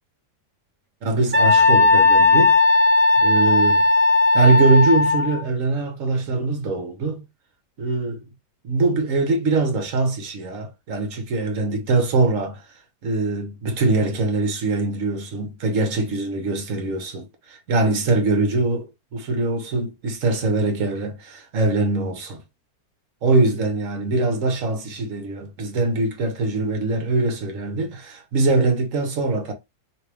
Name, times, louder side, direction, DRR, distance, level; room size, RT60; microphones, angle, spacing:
voice 1, 1.0-2.6 3.2-3.9 4.3-7.2 7.8-8.2 8.6-12.6 13.0-22.4 23.2-29.5, right 3 dB, 55° right, 1.3 m, -22 dB
Wind instrument woodwind instrument, 1.3-5.4, left 3 dB, 15° right, 0.3 m, -16 dB
3.3 x 3.0 x 3.2 m
omnidirectional pair, 1.8 m